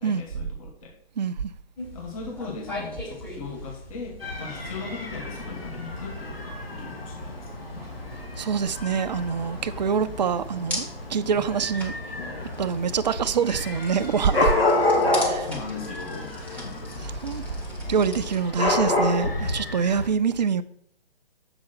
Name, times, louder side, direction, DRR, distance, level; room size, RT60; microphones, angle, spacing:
voice 1, 0.0-1.0 1.9-7.6 11.3-11.4 15.5-17.1, left 4 dB, 35° left, 1.3 m, -39 dB
voice 2, 1.2-1.5 8.4-11.9 12.6-14.5 15.2-15.5 17.0-17.4 17.9-20.6, right 6 dB, 45° right, 0.5 m, -25 dB
sound 1, 1.8-18.4, left 1 dB, 5° left, 1.1 m, -40 dB
Dog / Cat, 4.2-20.1, left 2 dB, 75° left, 2.2 m, -29 dB
6.8 x 4.9 x 5.7 m
figure-of-eight pair, 140°, 30 cm